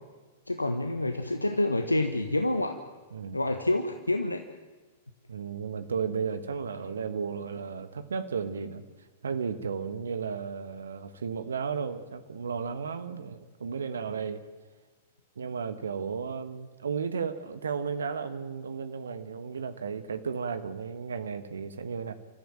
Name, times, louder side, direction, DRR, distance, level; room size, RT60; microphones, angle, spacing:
voice 1, 0.5-2.8 3.3-4.4, left 2 dB, 90° left, 7 dB, 1.3 m, -27 dB
voice 2, 5.3-8.8 9.2-14.4 15.4-22.1, right 6 dB, 70° right, 11 dB, 1.3 m, -34 dB
29.5 x 14.0 x 9.0 m, 1.3 s
figure-of-eight pair, 105°, 0 cm